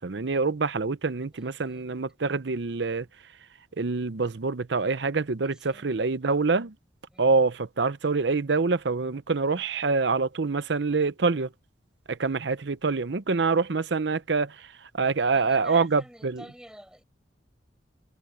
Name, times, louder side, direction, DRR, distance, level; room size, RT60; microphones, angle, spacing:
voice 1, 0.0-3.1 3.8-6.7 7.2-11.5 12.1-16.4, right 4 dB, 70° right, 0.7 m, -26 dB
voice 2, 1.3-1.9 5.4-6.1 7.1-7.4 15.2-17.0, equal, 5° right, 5.7 m, -49 dB
head